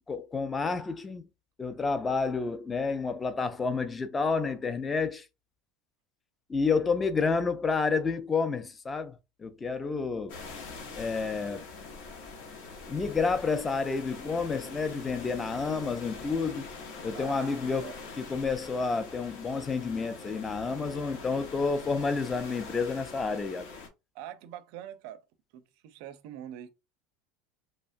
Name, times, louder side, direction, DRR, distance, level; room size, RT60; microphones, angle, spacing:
voice 1, 0.1-1.2 1.6-5.2 6.5-10.4 10.9-11.7 12.9-16.7 17.0-23.7, left 4 dB, 15° left, 0.4 m, -30 dB
sound 1, 10.3-23.9, left 4 dB, 70° left, 0.8 m, -44 dB
voice 2, 17.1-17.9 24.1-25.2 25.5-26.7, right 11 dB, 65° right, 0.4 m, -44 dB
2.9 x 2.2 x 2.5 m
supercardioid pair, 145°, 0 cm